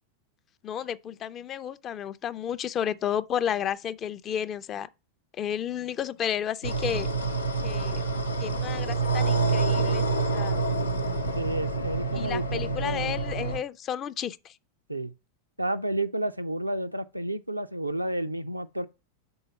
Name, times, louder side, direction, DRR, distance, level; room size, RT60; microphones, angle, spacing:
voice 1, 0.6-4.9 5.4-7.1 7.6-8.0 8.4-10.6 12.1-14.6, left 9 dB, 30° left, 0.4 m, -32 dB
sound 1, 6.6-13.6, right 3 dB, 85° left, 0.7 m, -27 dB
voice 2, 11.3-13.4 14.9-15.1 15.6-18.9, right 1 dB, 85° right, 0.4 m, -31 dB
5.4 x 3.9 x 5.6 m
figure-of-eight pair, 90°, 0 cm